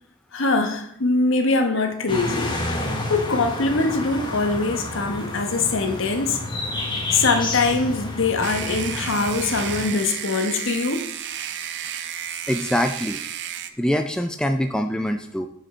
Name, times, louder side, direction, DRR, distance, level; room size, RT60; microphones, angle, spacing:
voice 1, 0.3-2.6 3.1-6.4 7.1-11.0, left 3 dB, 60° left, 6 dB, 1.0 m, -22 dB
sound 1, 2.1-9.9, left 2 dB, 20° left, 1.1 m, -30 dB
sound 2, 8.4-13.7, right 9 dB, 55° right, 0.5 m, -32 dB
voice 2, 12.5-13.2 13.8-15.5, equal, 5° left, 6 dB, 0.3 m, -24 dB
7.1 x 5.1 x 4.4 m, 0.71 s
head